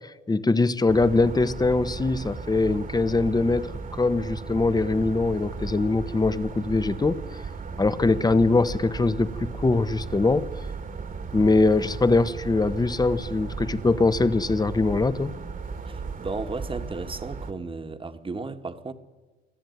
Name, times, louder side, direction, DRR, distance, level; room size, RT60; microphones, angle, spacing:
voice 1, 0.3-3.7 4.0-7.2 7.8-10.5 11.3-15.3, left 3 dB, 20° left, 1.2 m, -22 dB
sound 1, 0.9-17.5, right 5 dB, 45° right, 2.1 m, -36 dB
voice 2, 15.9-18.9, right 3 dB, 25° right, 1.7 m, -34 dB
25.5 x 15.0 x 9.5 m
cardioid pair, 90°, 20 cm